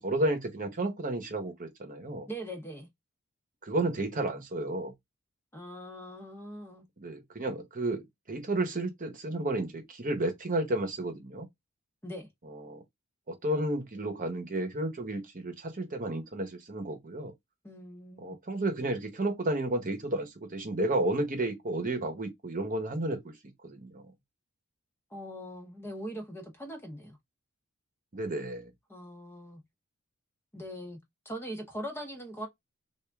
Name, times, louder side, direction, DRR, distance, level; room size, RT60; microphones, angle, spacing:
voice 1, 0.0-2.3 3.6-4.9 7.0-11.5 12.4-12.8 13.3-17.3 18.2-23.4 23.6-24.1 28.1-28.7, right 1 dB, 40° right, 1.0 m, -32 dB
voice 2, 2.3-2.9 5.5-6.9 12.0-12.3 17.6-18.4 25.1-27.2 28.9-29.6 30.5-31.0 31.2-32.5, equal, 10° left, 0.8 m, -41 dB
3.5 x 2.5 x 3.4 m
head